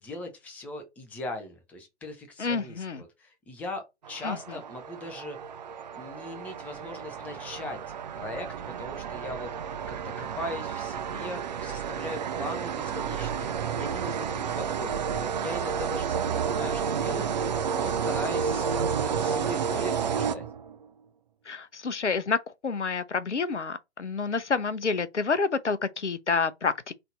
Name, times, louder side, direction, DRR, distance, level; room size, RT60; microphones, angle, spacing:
voice 1, 0.0-5.4 5.9-7.8 8.2-8.5 8.8-20.4, left 1 dB, 5° left, 0.6 m, -39 dB
voice 2, 2.4-3.0 4.2-4.4 21.5-26.9, left 4 dB, 85° left, 0.7 m, -28 dB
sound 1, 4.0-20.9, right 7 dB, 40° right, 0.4 m, -31 dB
4.0 x 3.3 x 3.8 m
figure-of-eight pair, 125°, 34 cm